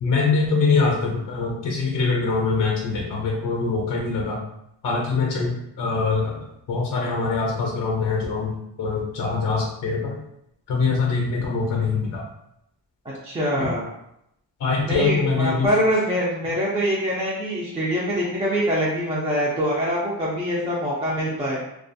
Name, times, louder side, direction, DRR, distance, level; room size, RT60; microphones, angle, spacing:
voice 1, 0.0-4.4 4.8-10.2 10.7-12.3 13.6-13.7 14.6-15.7, left 4 dB, 50° left, -1 dB, 0.5 m, -23 dB
voice 2, 13.0-13.8 14.8-21.6, equal, 15° right, -6 dB, 0.4 m, -24 dB
2.3 x 2.3 x 2.6 m, 0.80 s
wide cardioid pair, 145°, 41 cm